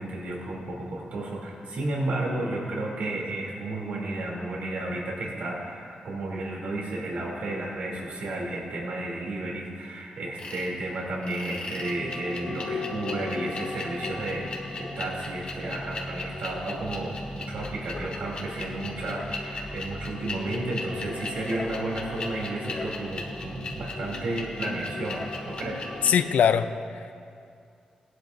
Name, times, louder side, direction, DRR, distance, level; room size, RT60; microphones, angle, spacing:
voice 1, 0.0-14.5 14.7-26.1, right 2 dB, 80° right, -3 dB, 3.0 m, -32 dB
sound 1, 10.4-10.7 11.2-26.1, left 2 dB, 45° left, 1.6 m, -36 dB
voice 2, 26.0-27.1, left 8 dB, 80° left, 11 dB, 0.5 m, -22 dB
19.0 x 11.5 x 2.7 m, 2.4 s
wide cardioid pair, 155°, 3 cm